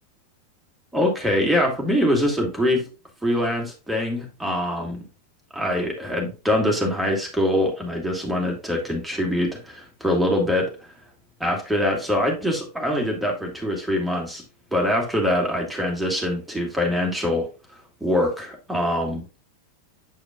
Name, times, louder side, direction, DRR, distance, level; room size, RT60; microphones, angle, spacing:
voice 1, 0.9-2.9 3.2-5.1 5.5-10.9 11.4-14.4 14.7-17.5 18.0-19.2, left 1 dB, 5° right, 1 dB, 1.8 m, -23 dB
8.3 x 4.9 x 2.3 m, 0.31 s
figure-of-eight pair, 90°, 0 cm